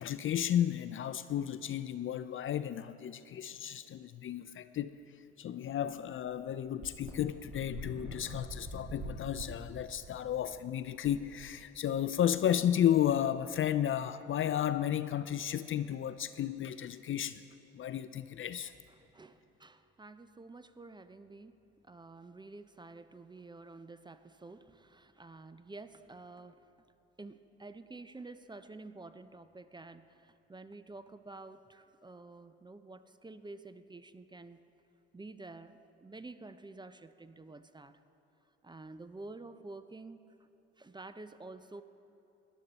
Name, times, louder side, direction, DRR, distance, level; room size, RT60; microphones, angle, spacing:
voice 1, 0.0-5.0 5.4-17.4 17.7-18.7, left 10 dB, 40° left, 13 dB, 0.5 m, -33 dB
sound 1, 5.8-5.9 6.2-6.3 6.8-12.0, right 2 dB, 30° right, 2.6 m, -46 dB
voice 2, 18.9-21.5 21.8-26.6 27.2-34.6 35.1-38.0 38.6-40.2 40.8-41.8, right 3 dB, 15° right, 11 dB, 0.6 m, -50 dB
18.0 x 11.5 x 4.1 m, 3.0 s
hypercardioid pair, 60°, 32 cm